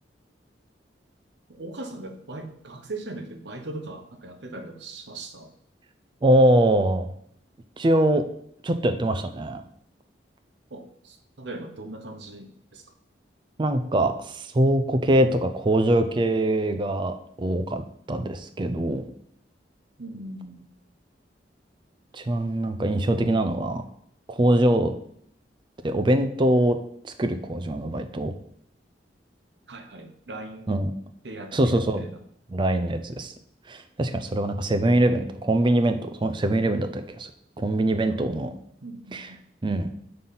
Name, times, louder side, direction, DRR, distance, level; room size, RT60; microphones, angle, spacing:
voice 1, 1.5-5.5 10.7-12.9 20.0-20.6 29.7-30.7 31.2-32.2 38.1-38.2 38.8-39.4, right 2 dB, 75° right, 6 dB, 0.9 m, -39 dB
voice 2, 6.2-7.1 7.8-8.2 8.6-9.6 13.6-17.8 18.1-19.1 22.1-23.8 24.3-24.9 25.8-26.8 27.0-28.3 30.7-30.9 31.5-32.0 32.5-33.3 33.7-37.3 37.6-38.5 39.1-39.3 39.6-39.9, right 1 dB, 25° right, 8 dB, 0.4 m, -23 dB
5.5 x 3.9 x 5.7 m, 0.68 s
head